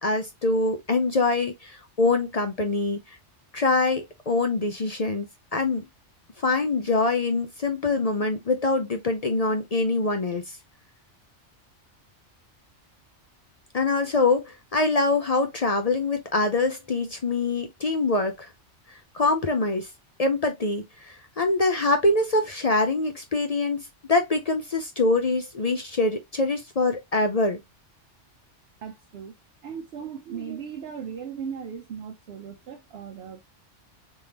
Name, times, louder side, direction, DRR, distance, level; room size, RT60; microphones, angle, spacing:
voice 1, 0.0-3.0 3.5-5.3 5.5-5.8 6.4-10.6 13.7-18.5 19.1-19.9 20.2-23.8 24.1-27.6, left 3 dB, 45° left, 0.6 m, -24 dB
voice 2, 28.8-29.3 29.6-33.4, right 7 dB, 65° right, 0.9 m, -37 dB
3.5 x 3.5 x 2.8 m
omnidirectional pair, 1.2 m